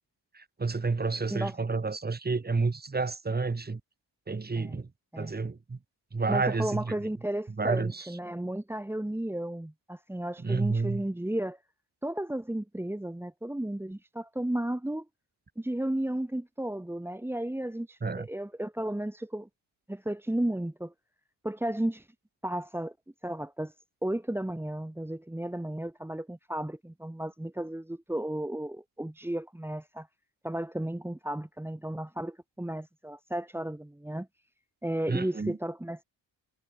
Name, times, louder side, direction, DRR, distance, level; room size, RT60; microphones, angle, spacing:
voice 1, 0.3-3.8 4.3-4.9 5.2-5.8 6.1-7.0 7.6-8.1 10.4-11.0 18.0-18.3 35.1-35.6, right 4 dB, 20° right, 6.5 m, -30 dB
voice 2, 6.3-11.6 12.0-15.1 15.6-19.5 19.9-20.9 21.4-22.1 22.4-22.9 23.2-23.7 24.0-30.1 30.4-34.3 34.8-36.0, right 1 dB, 5° right, 2.2 m, -33 dB
wide cardioid pair, 170°, 45 cm